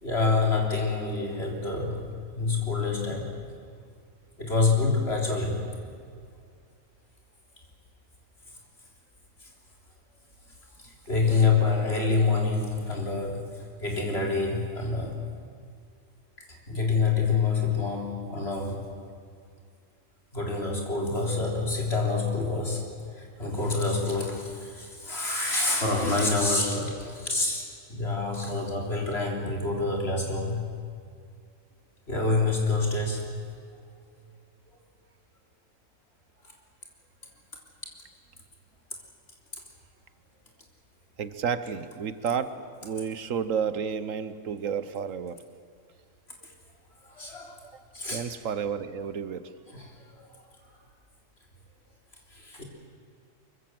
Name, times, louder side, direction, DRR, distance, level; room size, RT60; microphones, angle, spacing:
voice 1, 0.0-2.1 2.4-3.4 4.4-5.7 10.8-15.2 16.4-18.9 20.3-22.9 23.1-27.6 27.9-30.6 32.1-33.3 46.4-46.5 47.0-47.6 47.9-48.2 49.7-50.3 52.3-52.6, left 3 dB, 50° left, 0 dB, 4.0 m, -27 dB
voice 2, 41.2-45.4 47.7-49.5, right 7 dB, 75° right, 13 dB, 1.4 m, -31 dB
24.0 x 23.0 x 7.7 m, 2.2 s
omnidirectional pair, 1.4 m